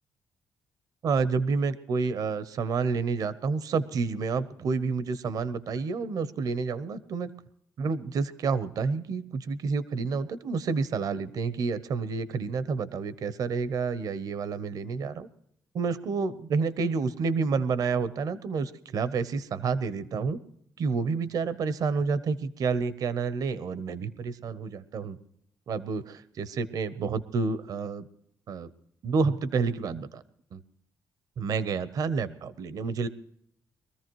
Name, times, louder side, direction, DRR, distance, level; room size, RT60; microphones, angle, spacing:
voice 1, 1.0-7.3 7.8-15.3 15.7-20.4 20.8-25.2 25.7-28.0 28.5-28.7 29.0-30.2 30.5-30.6 31.4-33.1, right 5 dB, 60° right, 15 dB, 0.8 m, -29 dB
23.0 x 14.0 x 3.1 m, 0.71 s
cardioid pair, 135°, 7 cm